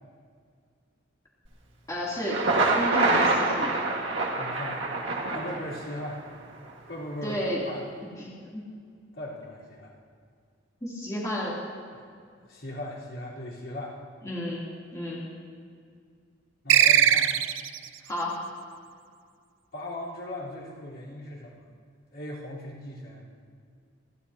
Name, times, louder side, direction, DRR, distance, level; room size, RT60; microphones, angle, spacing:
voice 1, 1.9-2.4 2.7-3.8 7.2-7.6 8.2-8.6 10.8-11.5 14.2-15.3 18.1-18.4, left 1 dB, 15° left, -7 dB, 3.1 m, -32 dB
Thunder, 2.1-6.1, right 3 dB, 70° right, 1.8 m, -26 dB
voice 2, 4.4-4.9 5.3-6.2 6.9-7.8 9.1-9.9 11.9-12.0 12.5-14.0 16.6-17.3 19.7-21.6 22.1-23.4, left 1 dB, 75° left, -7 dB, 4.1 m, -38 dB
sound 1, 16.7-17.9, right 10 dB, 90° right, 0.5 m, -20 dB
29.5 x 12.0 x 2.9 m, 2.2 s
head